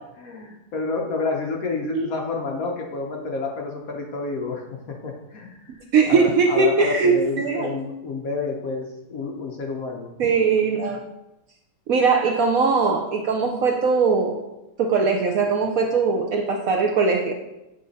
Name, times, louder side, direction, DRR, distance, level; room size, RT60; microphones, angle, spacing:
voice 1, 0.2-5.8 6.1-10.1, left 3 dB, 60° left, 1 dB, 1.1 m, -29 dB
voice 2, 5.9-7.7 10.2-11.0 11.9-14.5 14.8-17.3, right 4 dB, 65° right, 1 dB, 0.9 m, -20 dB
7.8 x 3.7 x 4.0 m, 0.93 s
omnidirectional pair, 1.9 m